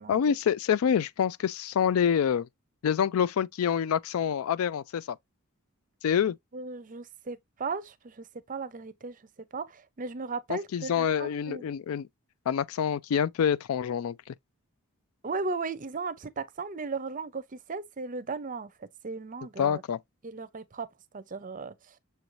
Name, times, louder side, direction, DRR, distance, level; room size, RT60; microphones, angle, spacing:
voice 1, 0.1-2.5 2.8-5.2 6.0-6.4 10.5-12.1 12.5-14.3 19.6-20.0, left 8 dB, 70° left, 0.3 m, -26 dB
voice 2, 6.5-9.2 9.5-11.7 15.2-19.8 20.2-20.9 21.1-22.0, right 4 dB, 35° right, 0.6 m, -36 dB
6.9 x 2.6 x 3.0 m
head